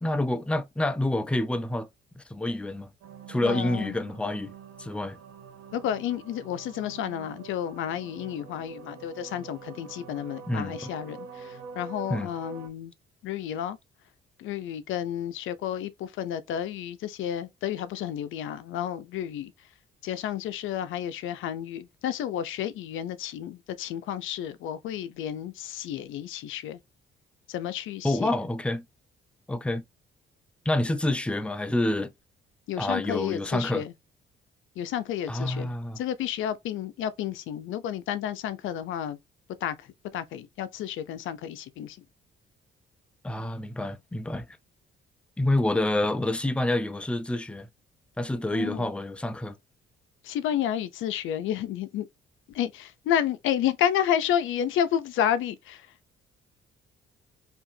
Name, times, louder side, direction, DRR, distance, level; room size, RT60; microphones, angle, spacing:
voice 1, 0.0-1.9 2.2-2.9 3.3-4.5 4.8-5.2 10.5-10.9 12.1-12.3 28.0-28.8 29.5-29.8 30.7-32.1 32.8-33.8 35.3-36.0 43.2-44.5 45.4-47.7 48.2-49.5, left 1 dB, 5° left, 0.5 m, -28 dB
sound 1, 3.0-12.7, right 5 dB, 80° right, 1.5 m, -45 dB
voice 2, 3.4-3.9 5.7-12.9 13.2-13.8 14.4-19.5 20.0-26.8 27.5-28.3 32.7-33.9 34.8-39.2 39.6-42.0 48.5-48.9 50.2-52.1 52.5-55.9, left 10 dB, 80° left, 0.5 m, -31 dB
4.4 x 2.8 x 2.6 m
cardioid pair, 90°, 20 cm